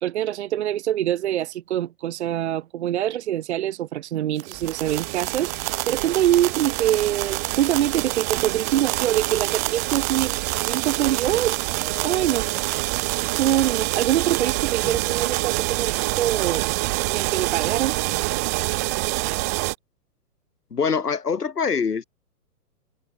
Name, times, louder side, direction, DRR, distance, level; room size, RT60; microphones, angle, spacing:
voice 1, 0.0-10.3 10.7-11.6 12.0-12.5 13.4-16.6 17.1-18.0, right 12 dB, 45° right, 0.8 m, -24 dB
sound 1, 4.4-19.7, right 26 dB, 10° right, 0.5 m, -26 dB
sound 2, 4.6-15.9, left 2 dB, 5° left, 7.0 m, -50 dB
voice 2, 20.7-22.0, left 5 dB, 80° left, 2.0 m, -24 dB
figure-of-eight pair, 120°, 46 cm